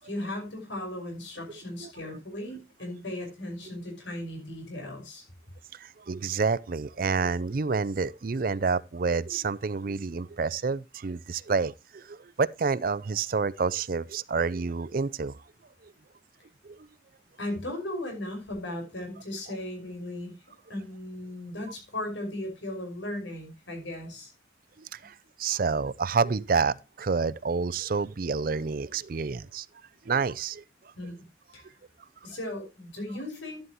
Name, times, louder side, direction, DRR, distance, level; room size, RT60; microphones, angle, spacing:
voice 1, 0.0-5.2 17.4-20.3 20.7-24.3 31.0-31.2 31.5-31.7 32.2-33.7, left 1 dB, 80° left, 5.5 m, -37 dB
voice 2, 5.7-15.3 16.6-16.8 24.8-29.7 30.1-30.6, right 4 dB, 50° right, 0.5 m, -28 dB
12.0 x 11.0 x 3.0 m
head